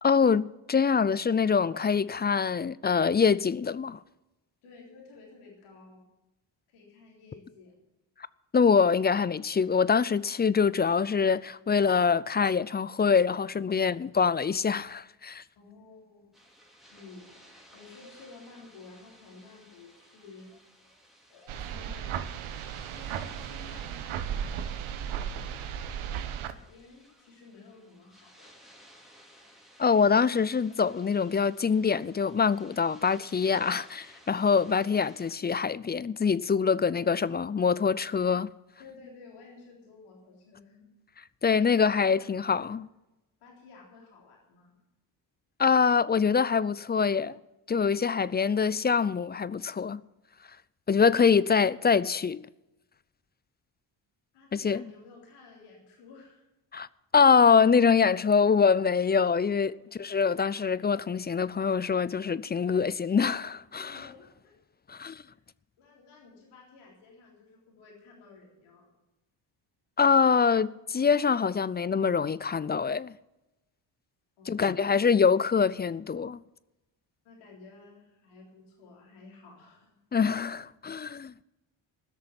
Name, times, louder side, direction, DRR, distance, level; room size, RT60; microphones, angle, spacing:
voice 1, 0.0-4.0 8.5-15.4 29.8-38.5 41.4-42.8 45.6-47.4 47.7-50.0 50.9-52.4 54.5-54.8 56.7-56.9 57.1-64.0 64.9-65.2 70.0-73.1 74.5-76.4 80.1-81.4, left 6 dB, 20° left, 0.4 m, -24 dB
voice 2, 4.6-6.0 6.7-7.7 15.6-16.4 16.8-20.5 21.3-22.2 22.9-24.6 24.8-28.7 36.9-37.1 38.8-40.9 41.4-42.7 43.4-44.7 54.3-56.4 59.7-59.9 63.8-64.5 65.8-68.9 74.4-75.2 77.2-80.0, left 4 dB, 85° left, 3.8 m, -53 dB
sound 1, 16.3-35.4, equal, ahead, 3.1 m, -57 dB
sound 2, 21.5-26.5, right 9 dB, 75° right, 1.1 m, -35 dB
16.0 x 6.7 x 9.6 m
supercardioid pair, 60°, 50 cm